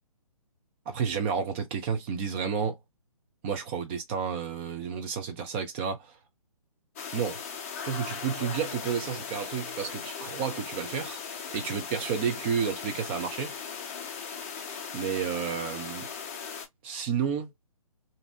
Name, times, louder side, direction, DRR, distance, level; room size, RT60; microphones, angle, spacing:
voice 1, 0.9-2.8 3.4-6.1 7.1-7.4 7.8-11.2 11.5-13.5 14.9-16.1 16.8-17.5, right 6 dB, 20° right, 0.6 m, -31 dB
sound 1, 7.0-16.7, left 6 dB, 25° left, 0.5 m, -38 dB
2.7 x 2.6 x 2.2 m
figure-of-eight pair, 135°, 19 cm